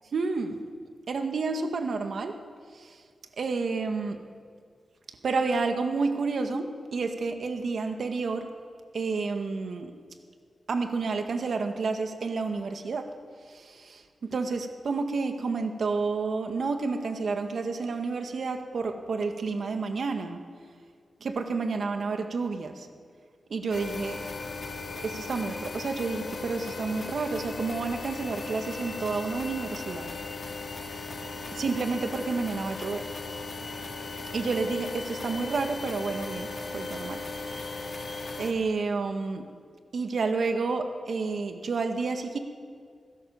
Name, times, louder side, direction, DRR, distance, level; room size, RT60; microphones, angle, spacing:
voice 1, 0.1-0.6 1.1-2.4 2.7-3.0 3.4-4.2 5.2-8.5 8.9-9.9 10.7-13.1 13.5-20.4 21.2-22.9 23.5-24.2 25.0-30.1 31.5-33.1 34.3-37.2 38.3-39.5 39.9-42.4, right 4 dB, 65° right, 5 dB, 1.9 m, -30 dB
sound 1, 23.7-38.5, left 3 dB, 50° left, 2.9 m, -37 dB
26.5 x 17.0 x 7.2 m, 2.1 s
wide cardioid pair, 115°, 0 cm